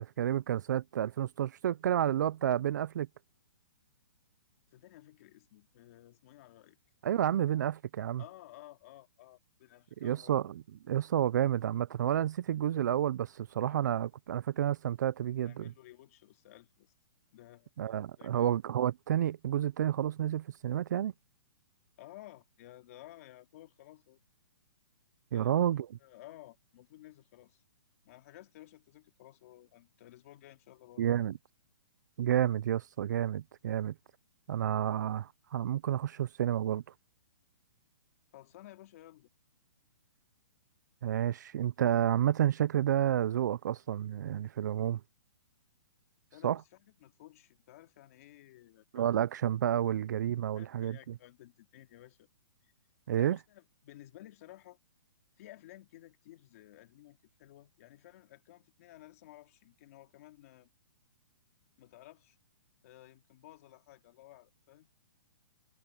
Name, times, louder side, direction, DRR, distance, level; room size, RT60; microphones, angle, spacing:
voice 1, 0.0-3.1 7.0-8.2 10.0-10.5 10.9-15.7 17.8-21.1 25.3-25.9 31.0-31.3 32.2-33.9 34.5-36.8 41.0-45.0 46.4-46.6 48.9-51.1 53.1-53.4, right 11 dB, 50° right, 0.3 m, -30 dB
voice 2, 4.7-6.8 8.2-10.4 15.3-16.9 17.3-17.7 18.2-18.5 22.0-24.2 25.3-25.7 26.0-27.6 28.0-31.1 38.3-39.3 46.3-49.2 50.5-52.3 53.1-54.8 55.4-60.7 61.8-62.4 62.8-64.9, left 15 dB, 40° left, 2.5 m, -55 dB
hypercardioid pair, 165°, 13 cm